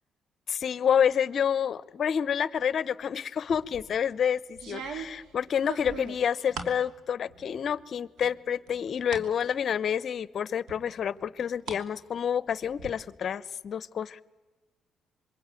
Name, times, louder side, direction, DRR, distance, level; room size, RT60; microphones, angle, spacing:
voice 1, 0.5-14.2, left 8 dB, 55° left, 18 dB, 0.8 m, -28 dB
sound 1, 3.5-3.9 4.6-6.8 7.3-7.8 8.2-9.3 9.7-9.8 10.7-11.8 12.1-12.9, right 5 dB, 80° right, 2.9 m, -40 dB
27.0 x 23.0 x 9.1 m, 1.2 s
cardioid pair, 90°, 0 cm